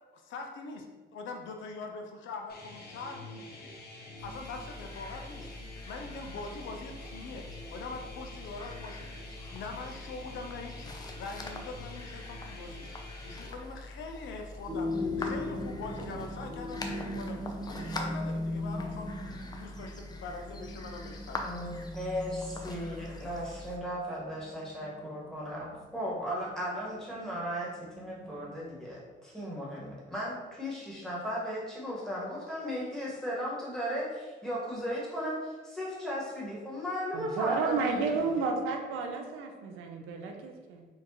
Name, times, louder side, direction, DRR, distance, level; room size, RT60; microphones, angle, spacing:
voice 1, 0.1-0.9 1.1-3.7 4.2-5.5 5.9-7.4 7.7-9.1 9.4-12.9 13.2-21.8, left 3 dB, 75° left, 3 dB, 0.5 m, -43 dB
sound 1, 2.5-13.5, left 2 dB, 55° left, 1.0 m, -47 dB
sound 2, 4.2-23.8, left 2 dB, 20° left, 0.5 m, -44 dB
sound 3, 14.7-28.6, left 1 dB, 25° right, 0.6 m, -39 dB
voice 2, 21.4-27.7 28.0-38.4, equal, 5° left, -6 dB, 1.4 m, -36 dB
voice 3, 37.1-40.9, right 4 dB, 90° right, 3 dB, 0.5 m, -32 dB
4.3 x 2.5 x 2.9 m, 1.3 s
cardioid pair, 90°, 20 cm